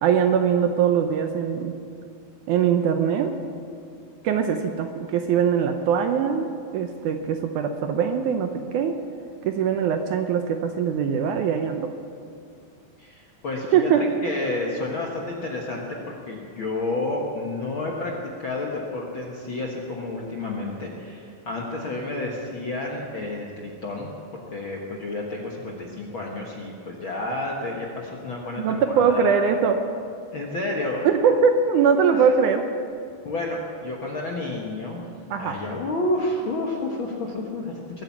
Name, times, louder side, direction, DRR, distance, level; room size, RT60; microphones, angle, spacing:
voice 1, 0.0-1.7 2.5-3.4 4.2-9.0 9.4-11.9 13.7-14.1 28.6-29.8 31.0-32.6 35.3-35.6, right 7 dB, 75° right, 6 dB, 1.9 m, -22 dB
voice 2, 13.0-13.9 14.2-24.1 24.5-29.3 30.3-31.1 32.1-32.3 33.2-35.0 35.4-38.0, left 2 dB, 55° left, -2 dB, 1.5 m, -30 dB
21.0 x 9.1 x 7.2 m, 2.3 s
omnidirectional pair, 4.1 m